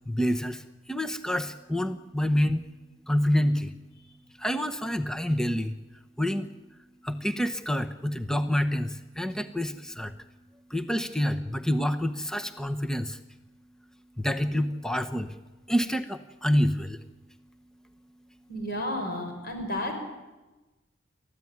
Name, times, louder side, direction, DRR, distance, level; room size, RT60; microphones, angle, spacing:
voice 1, 0.1-2.6 3.1-3.7 4.4-5.7 6.2-6.5 7.0-10.1 10.7-13.2 14.2-15.3 15.7-17.0, equal, 5° left, 7 dB, 0.9 m, -27 dB
voice 2, 18.5-20.0, left 1 dB, 45° left, 3 dB, 6.0 m, -32 dB
30.0 x 14.0 x 9.5 m, 1.1 s
head